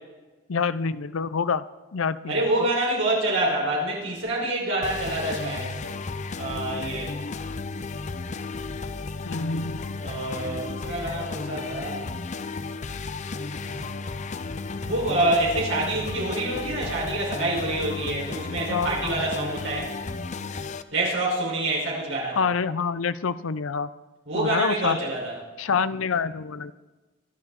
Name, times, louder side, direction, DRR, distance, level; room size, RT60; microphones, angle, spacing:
voice 1, 0.5-1.7 1.9-2.4 9.2-10.0 18.7-19.1 22.4-23.9 24.3-25.0 25.6-26.7, left 5 dB, 85° left, 15 dB, 0.6 m, -27 dB
voice 2, 2.3-6.0 6.4-7.1 10.0-12.0 13.5-14.3 14.8-19.9 20.9-22.4 24.3-25.3, right 2 dB, 75° right, -4 dB, 5.9 m, -27 dB
sound 1, 4.8-20.8, left 3 dB, 35° left, 0.5 m, -33 dB
25.0 x 12.0 x 4.3 m, 1.2 s
head